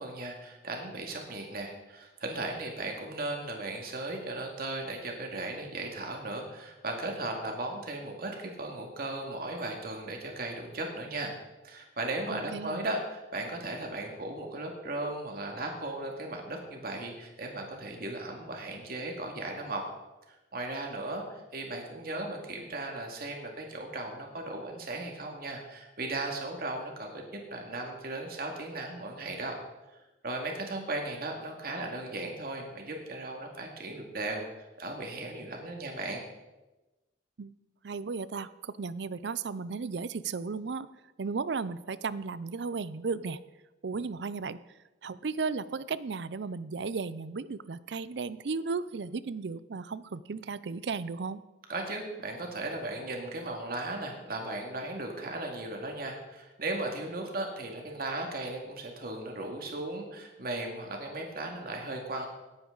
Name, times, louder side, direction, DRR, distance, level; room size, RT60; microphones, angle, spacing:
voice 1, 0.0-11.3 11.6-19.8 20.5-29.5 30.2-34.4 34.8-36.2 51.7-62.3, right 2 dB, 60° right, 1 dB, 2.2 m, -36 dB
voice 2, 12.3-12.8 37.4-37.5 37.8-40.9 41.2-43.4 43.8-44.6 45.0-51.4, right 4 dB, 75° right, 17 dB, 0.5 m, -35 dB
17.5 x 9.7 x 4.0 m, 1.1 s
head